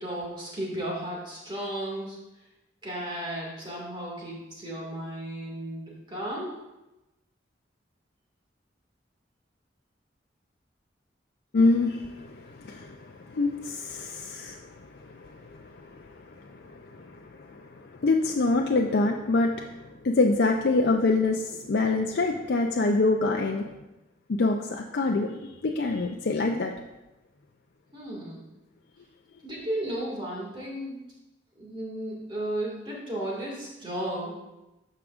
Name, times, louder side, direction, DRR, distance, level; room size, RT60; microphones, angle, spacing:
voice 1, 0.0-2.2 2.8-6.5 27.9-28.4 29.4-31.0 31.6-34.3, right 1 dB, 25° right, -4 dB, 2.0 m, -34 dB
voice 2, 11.5-23.6 24.3-26.7, left 3 dB, 70° left, 1 dB, 0.5 m, -26 dB
13.0 x 4.9 x 2.5 m, 0.99 s
head